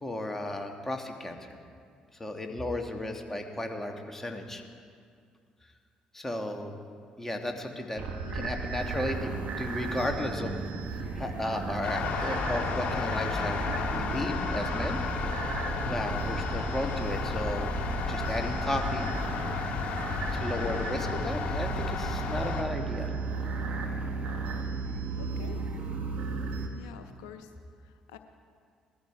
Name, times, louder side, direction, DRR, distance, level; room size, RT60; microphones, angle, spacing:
voice 1, 0.0-1.6 2.2-4.6 6.1-6.7 7.2-8.0 8.3-10.6 11.2-15.0 15.9-17.7 18.1-19.1 20.3-23.1, left 1 dB, 15° left, 3 dB, 2.1 m, -34 dB
sound 1, 8.0-26.7, right 4 dB, 55° right, 1.8 m, -34 dB
voice 2, 8.2-8.5 25.2-25.6 26.7-27.5 27.8-28.2, left 9 dB, 75° left, 8 dB, 0.6 m, -47 dB
sound 2, 11.8-22.6, left 6 dB, 50° left, 1.9 m, -33 dB
18.5 x 13.5 x 4.8 m, 2.2 s
hypercardioid pair, 50°, 3 cm